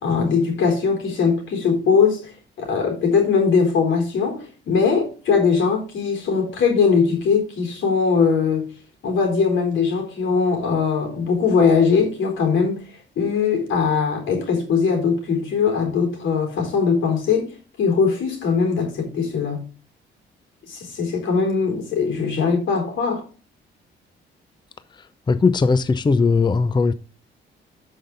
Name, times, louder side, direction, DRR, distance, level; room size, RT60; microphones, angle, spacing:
voice 1, 0.0-2.3 2.6-8.7 9.0-12.8 13.2-19.6 20.7-23.2, left 5 dB, 75° left, 4.0 m, -20 dB
voice 2, 25.3-26.9, left 4 dB, 20° left, 0.6 m, -18 dB
12.0 x 5.7 x 3.8 m
cardioid pair, 90°, 20 cm